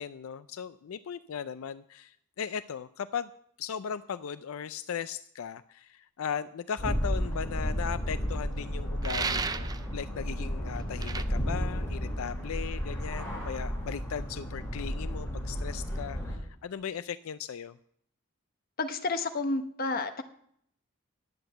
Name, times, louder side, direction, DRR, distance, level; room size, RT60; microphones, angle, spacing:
voice 1, 0.0-3.3 3.6-17.8, left 7 dB, 80° left, 13 dB, 0.4 m, -37 dB
sound 1, 6.8-16.3, equal, 10° left, 3.6 m, -33 dB
sound 2, 9.0-9.8 11.0-11.2, right 5 dB, 20° right, 0.4 m, -32 dB
voice 2, 18.8-20.2, left 3 dB, 45° left, 8 dB, 1.0 m, -30 dB
10.5 x 7.9 x 7.8 m, 0.68 s
head